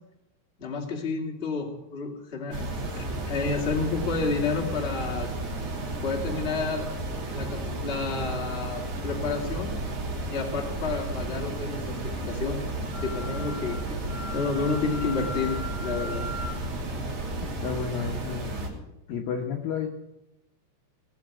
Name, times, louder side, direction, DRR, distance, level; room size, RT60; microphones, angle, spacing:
voice 1, 0.6-2.7 3.0-5.3 6.0-6.9 7.3-9.7 10.3-11.9 12.2-12.6 13.0-16.3, left 4 dB, 20° left, 0 dB, 1.8 m, -30 dB
sound 1, 2.5-18.7, right 2 dB, 45° right, 4.2 m, -33 dB
Wind instrument woodwind instrument, 12.8-16.6, left 2 dB, 70° right, 1.0 m, -39 dB
voice 2, 17.4-18.5 19.1-19.9, left 7 dB, 70° left, 2 dB, 2.3 m, -31 dB
19.5 x 7.5 x 9.0 m, 0.91 s
omnidirectional pair, 5.3 m